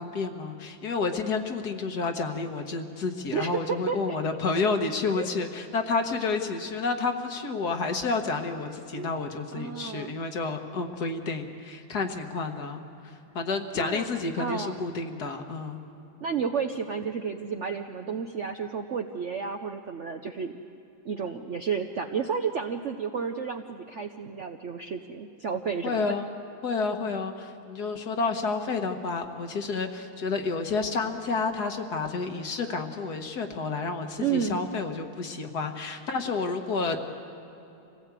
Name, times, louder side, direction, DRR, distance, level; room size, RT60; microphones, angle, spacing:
voice 1, 0.0-15.8 25.8-26.3 26.6-37.0, left 4 dB, 55° left, 5 dB, 1.7 m, -30 dB
voice 2, 3.3-4.2 5.2-5.3 9.0-9.1 9.5-10.1 13.7-14.1 14.4-14.8 16.2-20.5 21.0-26.1 34.2-34.6, right 6 dB, 60° right, 5 dB, 0.8 m, -31 dB
26.0 x 17.0 x 8.2 m, 2.9 s
omnidirectional pair, 2.1 m